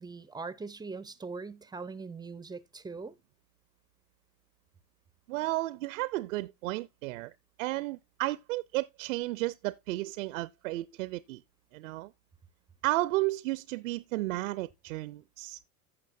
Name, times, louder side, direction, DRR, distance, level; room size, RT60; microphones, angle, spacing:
voice 1, 0.0-3.1, right 4 dB, 10° right, 0.5 m, -41 dB
voice 2, 5.3-7.3 7.6-11.4 11.7-12.1 12.8-15.6, right 19 dB, 60° right, 0.6 m, -33 dB
15.5 x 5.9 x 2.6 m
hypercardioid pair, 90°, 44 cm